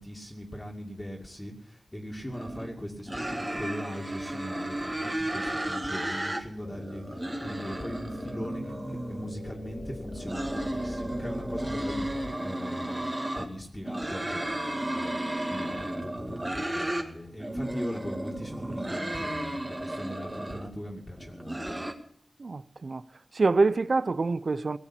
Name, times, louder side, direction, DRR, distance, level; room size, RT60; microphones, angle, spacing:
voice 1, 0.0-13.1 13.4-15.1 15.5-21.8, equal, 20° left, 2.5 m, -40 dB
sound 1, 2.3-2.7 3.1-6.4 6.7-9.3 10.0-13.5 13.8-17.1 17.4-20.7 21.2-21.9, right 1 dB, 25° right, 2.1 m, -33 dB
sound 2, 6.6-12.3, left 1 dB, 90° left, 3.7 m, -42 dB
voice 2, 22.4-23.0 23.3-24.8, right 3 dB, 65° right, 0.7 m, -25 dB
18.5 x 7.4 x 9.9 m
wide cardioid pair, 55°, 0 cm